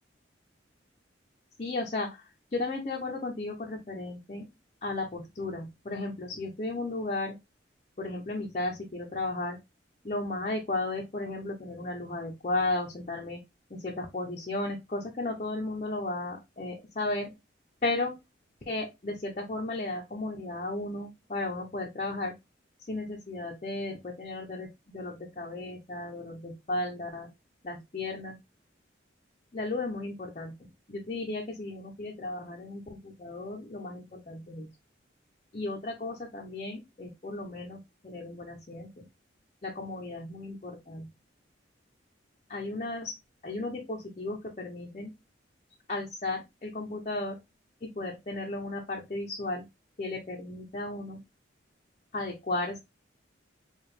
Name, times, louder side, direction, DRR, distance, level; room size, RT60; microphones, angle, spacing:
voice 1, 1.6-4.4 4.8-7.3 8.0-9.6 10.0-13.4 13.7-17.3 17.8-18.2 18.7-22.3 22.8-27.3 27.6-28.4 29.5-30.5 30.9-34.7 35.5-39.0 39.6-41.1 42.5-43.1 43.4-45.1 45.9-47.4 47.8-49.7 50.0-51.2 52.1-52.8, left 2 dB, 35° left, -1 dB, 0.6 m, -34 dB
4.8 x 2.4 x 3.1 m, 0.22 s
head